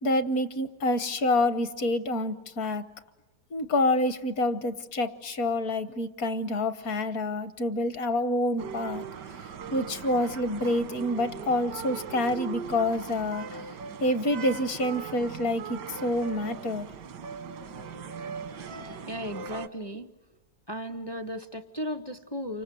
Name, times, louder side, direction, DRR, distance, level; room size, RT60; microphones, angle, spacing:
voice 1, 0.0-2.8 3.5-9.0 9.7-13.6 14.0-16.9, left 1 dB, 60° left, 12 dB, 1.5 m, -27 dB
sound 1, 8.6-19.7, right 6 dB, 90° right, 1.7 m, -39 dB
voice 2, 19.1-20.1 20.7-22.6, equal, 25° left, 9 dB, 0.5 m, -35 dB
29.0 x 25.5 x 7.7 m, 1.1 s
omnidirectional pair, 1.8 m